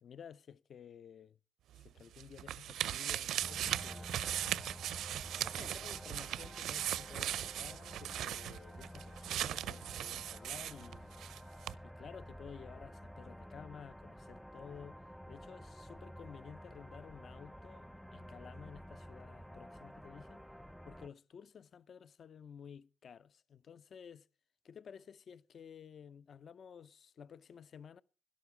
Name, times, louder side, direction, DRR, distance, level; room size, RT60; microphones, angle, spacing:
voice 1, 0.0-1.4 1.8-4.2 5.4-11.1 11.8-15.0 15.3-20.4 20.9-24.3 24.6-28.0, left 7 dB, 55° left, 0.5 m, -53 dB
sound 1, 1.7-11.4 11.6-11.7, right 11 dB, 75° right, 0.5 m, -38 dB
sound 2, 3.4-21.1, equal, ahead, 0.5 m, -51 dB
12.5 x 11.5 x 4.8 m
cardioid pair, 90°, 0 cm